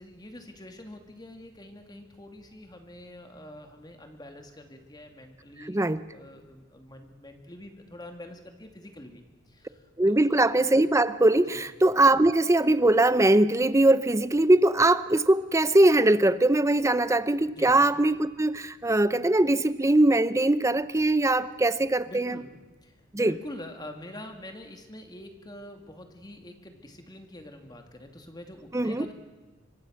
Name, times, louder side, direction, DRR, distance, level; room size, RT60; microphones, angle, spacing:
voice 1, 0.0-5.8 6.1-10.4 11.5-11.6 17.5-17.8 22.1-22.5 22.8-23.0 23.2-29.1, left 1 dB, 20° left, 2.4 m, -45 dB
voice 2, 5.7-6.0 10.0-22.4 23.1-23.3 28.7-29.1, right 2 dB, 15° right, 0.6 m, -21 dB
24.5 x 23.5 x 6.4 m
head